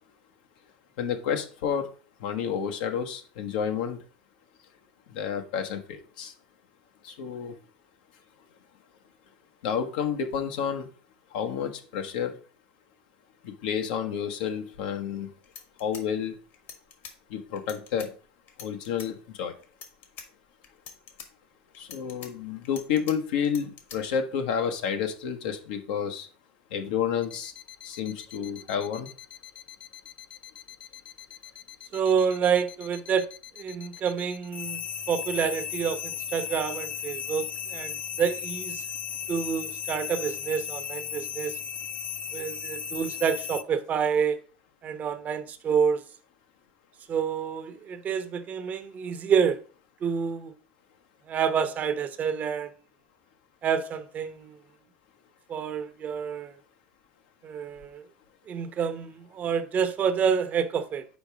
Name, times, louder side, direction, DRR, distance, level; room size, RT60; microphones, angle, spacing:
voice 1, 1.0-1.9 2.2-4.0 5.1-6.3 7.0-7.5 9.6-10.9 11.3-12.3 13.4-15.3 15.8-16.3 17.3-18.1 18.6-19.5 21.8-26.3 26.7-27.5 27.8-29.1, left 7 dB, 80° left, 1.1 m, -30 dB
sound 1, 15.1-15.2 15.4-17.1 17.6-18.1 18.5-19.1 19.6-20.3 20.6-21.3 21.7-23.1 23.4-24.0, left 6 dB, 55° left, 1.4 m, -44 dB
sound 2, 27.2-43.6, left 8 dB, 30° left, 0.4 m, -37 dB
voice 2, 31.9-33.3 33.6-34.8 35.1-38.8 39.3-41.6 42.3-44.4 44.8-46.0 47.1-49.6 50.0-50.5 51.3-52.7 53.6-54.6 55.5-56.5 57.4-58.0 58.5-61.0, right 7 dB, 35° right, 0.8 m, -28 dB
5.1 x 4.6 x 5.0 m
supercardioid pair, 110°, 4 cm